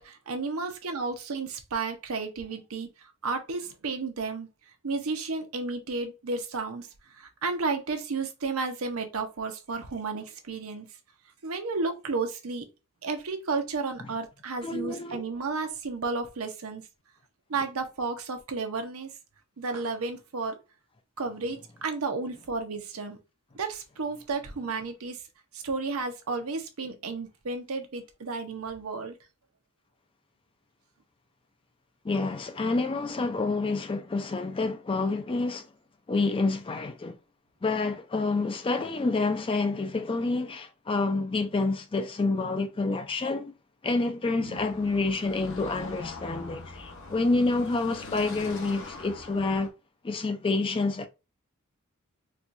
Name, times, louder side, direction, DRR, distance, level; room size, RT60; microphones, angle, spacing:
voice 1, 0.0-4.5 4.8-6.9 7.1-10.9 11.4-12.7 13.0-16.8 17.5-19.1 19.6-20.6 21.2-23.2 23.5-25.2 25.5-29.1 44.4-44.6, right 4 dB, 70° right, 0.7 m, -32 dB
voice 2, 14.6-15.2 32.0-35.7 36.1-37.2 37.6-43.5 43.8-49.7 50.0-51.1, left 3 dB, 25° left, 0.4 m, -28 dB
Car passing by / Traffic noise roadway noise, 44.6-49.7, left 3 dB, 55° left, 0.8 m, -43 dB
4.3 x 2.3 x 2.5 m
head